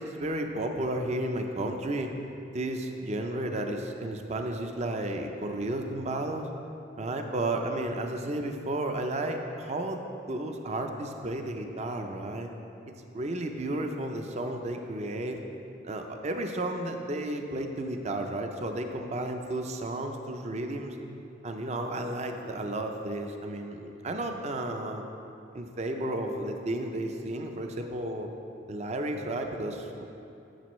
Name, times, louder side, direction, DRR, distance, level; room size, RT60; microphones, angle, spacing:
voice 1, 0.0-2.1 2.5-6.5 7.0-10.0 10.3-12.5 13.1-15.4 15.8-21.0 21.4-25.1 25.5-28.3 28.7-30.0, right 1 dB, 35° right, 4 dB, 0.5 m, -33 dB
10.5 x 7.2 x 3.1 m, 2.7 s
head